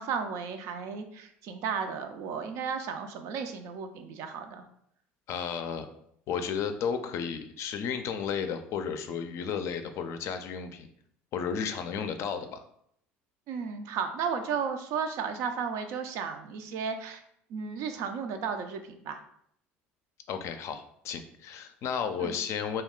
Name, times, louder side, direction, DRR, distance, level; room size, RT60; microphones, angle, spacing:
voice 1, 0.0-4.6 13.5-17.2 17.5-19.2 22.2-22.4, right 6 dB, 65° right, 6 dB, 0.4 m, -34 dB
voice 2, 5.3-5.9 6.3-10.9 11.3-12.6 20.3-22.8, left 7 dB, 55° left, 7 dB, 0.4 m, -33 dB
2.3 x 2.2 x 3.6 m, 0.70 s
hypercardioid pair, 75°, 6 cm